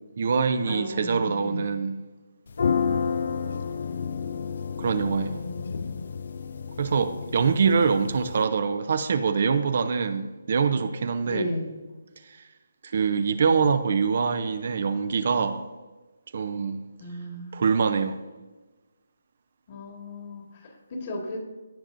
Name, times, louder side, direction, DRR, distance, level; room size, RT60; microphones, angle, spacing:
voice 1, 0.2-2.0 4.8-5.4 6.8-11.5 12.8-15.6 16.3-16.8 17.5-18.2, right 5 dB, 50° right, 0.6 m, -24 dB
voice 2, 0.7-1.7 5.0-6.1 11.3-11.7 17.0-17.6 19.7-21.4, left 1 dB, 35° left, 1.8 m, -35 dB
sound 1, 2.5-8.4, left 6 dB, 60° left, 0.4 m, -30 dB
15.0 x 6.0 x 2.6 m
hypercardioid pair, 160°, 0 cm